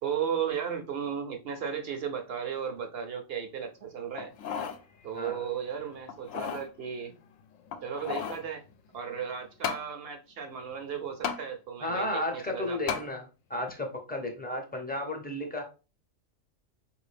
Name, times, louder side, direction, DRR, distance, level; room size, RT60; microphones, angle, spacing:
voice 1, 0.0-4.3 5.0-7.1 7.8-8.6 8.9-13.0, right 7 dB, 55° right, 0.8 m, -35 dB
sound 1, 4.2-4.8 5.3-5.4 6.1-6.7 7.7-8.5 9.6-9.9 11.2-11.4 12.9-13.1 13.7-13.8, left 7 dB, 75° left, 0.9 m, -34 dB
voice 2, 11.8-15.6, left 1 dB, 10° left, 0.6 m, -33 dB
4.8 x 2.7 x 3.3 m
omnidirectional pair, 1.4 m